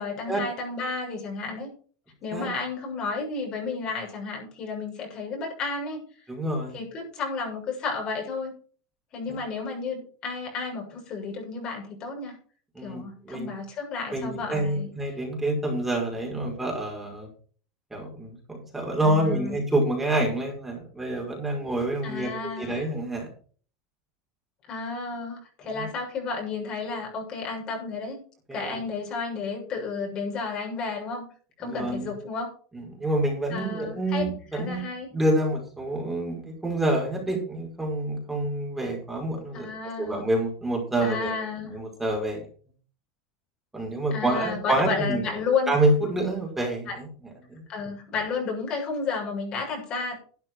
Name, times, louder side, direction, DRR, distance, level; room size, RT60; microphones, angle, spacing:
voice 1, 0.0-1.7 2.2-6.0 6.7-8.5 9.1-12.4 12.8-14.9 19.0-19.6 22.0-22.9 24.7-28.2 28.5-31.3 31.6-32.5 33.5-35.1 39.5-40.2 41.0-41.8 44.1-45.7 46.6-47.0 47.7-50.2, left 4 dB, 40° left, 0 dB, 7.0 m, -32 dB
voice 2, 6.3-6.8 12.7-13.5 14.1-17.3 17.9-23.3 25.7-25.9 28.5-28.8 31.6-32.1 32.7-34.8 35.1-39.7 40.0-41.3 41.6-42.5 43.7-45.3 45.7-47.1 47.5-47.6, right 1 dB, 10° right, 0 dB, 5.4 m, -27 dB
12.5 x 9.4 x 4.8 m, 0.43 s
supercardioid pair, 115°, 2 cm